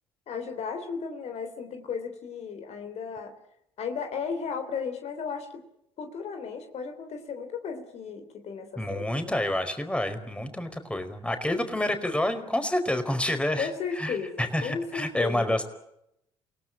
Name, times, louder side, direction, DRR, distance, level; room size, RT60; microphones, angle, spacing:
voice 1, 0.3-3.4 3.8-5.6 6.0-9.3 13.6-15.6, left 6 dB, 55° left, 6 dB, 3.5 m, -35 dB
voice 2, 8.8-13.7 14.0-15.6, left 1 dB, 10° left, 8 dB, 4.8 m, -28 dB
28.5 x 18.0 x 8.9 m, 0.78 s
hypercardioid pair, 55°, 13 cm